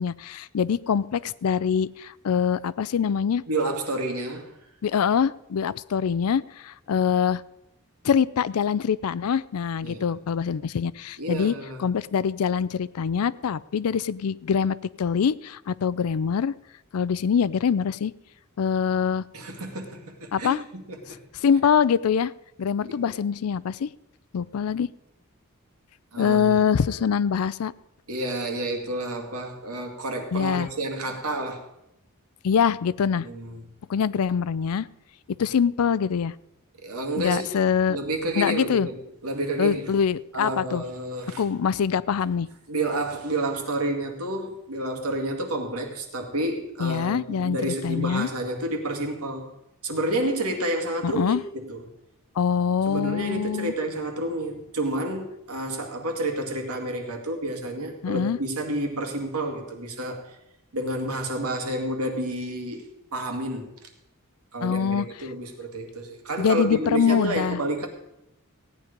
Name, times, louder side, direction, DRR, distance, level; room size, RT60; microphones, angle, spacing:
voice 1, 0.0-3.4 4.8-7.4 8.0-11.5 11.8-16.5 16.9-18.1 18.6-19.2 20.3-20.6 21.4-22.3 22.6-23.9 24.3-24.9 26.2-27.7 30.3-30.7 32.4-33.3 33.9-34.9 35.4-36.3 37.2-38.0 38.4-38.9 39.6-40.8 41.4-42.5 46.8-48.3 51.0-51.4 52.4-53.7 58.0-58.4 64.6-65.1 66.4-67.6, left 7 dB, 75° left, 19 dB, 0.4 m, -24 dB
voice 2, 3.5-4.6 9.8-10.1 11.2-11.8 19.3-21.2 22.8-23.0 26.1-26.8 28.1-31.7 33.1-33.6 36.7-37.5 37.9-39.9 40.3-41.4 42.7-49.5 49.8-51.8 52.9-60.4 60.7-63.7 64.5-67.9, right 1 dB, 90° right, 2 dB, 2.1 m, -30 dB
16.0 x 9.5 x 5.2 m, 0.85 s
head